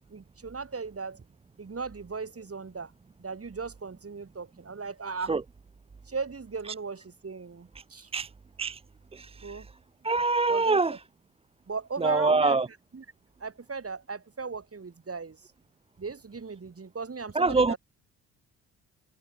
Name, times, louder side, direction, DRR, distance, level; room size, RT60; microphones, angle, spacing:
voice 1, 0.1-1.2 1.6-2.9 3.2-5.3 6.1-8.1 9.4-9.7 10.5-10.8 11.7-12.6 12.9-13.0 13.4-15.4 16.0-17.8, right 4 dB, 30° right, 7.7 m, -37 dB
voice 2, 9.1-9.7 10.0-11.0 12.0-12.7 17.3-17.7, right 3 dB, 10° right, 0.7 m, -25 dB
figure-of-eight pair, 45°, 49 cm